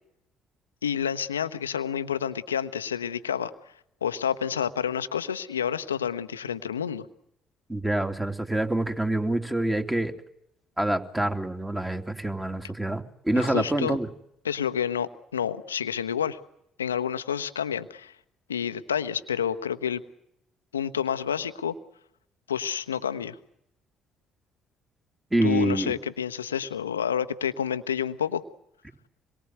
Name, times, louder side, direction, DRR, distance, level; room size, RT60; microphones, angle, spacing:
voice 1, 0.8-3.5 4.0-7.1 13.4-14.0 14.4-16.4 16.8-18.1 18.5-20.0 20.7-21.7 22.5-23.4 25.4-28.4, left 8 dB, 80° left, 12 dB, 1.0 m, -29 dB
voice 2, 7.7-10.1 10.8-14.1 25.3-26.0, right 1 dB, 10° right, 5 dB, 3.1 m, -26 dB
27.0 x 22.5 x 8.1 m, 0.79 s
figure-of-eight pair, 50°, 0 cm